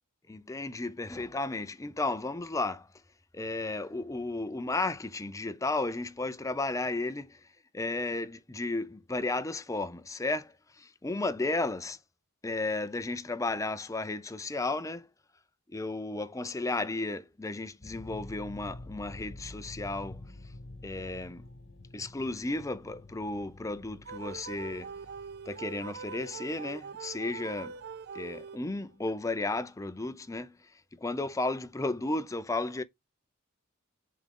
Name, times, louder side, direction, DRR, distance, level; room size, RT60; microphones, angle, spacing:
voice 1, 0.3-2.9 3.3-7.4 7.7-12.0 12.4-15.1 15.7-20.2 20.8-21.4 21.9-24.9 25.5-27.8 28.1-30.6 30.9-32.8, left 2 dB, 15° left, 0.5 m, -33 dB
sound 1, 17.8-28.8, left 2 dB, 60° left, 1.3 m, -49 dB
sound 2, 24.1-28.9, right 5 dB, 50° right, 0.4 m, -43 dB
7.0 x 3.7 x 3.7 m
head